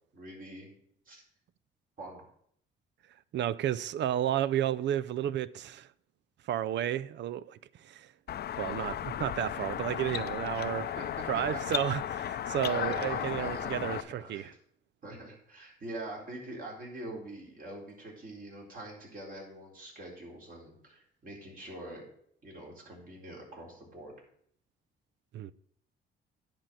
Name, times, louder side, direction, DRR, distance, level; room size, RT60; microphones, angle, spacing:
voice 1, 0.1-0.7 1.1-1.2 2.0-2.2 10.6-11.6 12.6-14.6 15.0-22.0 22.4-24.1, right 1 dB, 45° right, 4.2 m, -44 dB
voice 2, 3.3-5.9 6.5-7.6 7.8-8.1 8.6-10.9 11.3-14.5 25.3-25.5, right 11 dB, 65° right, 0.5 m, -32 dB
sound 1, 8.3-14.0, left 10 dB, 55° left, 0.5 m, -35 dB
10.0 x 4.4 x 7.7 m
cardioid pair, 90°, 20 cm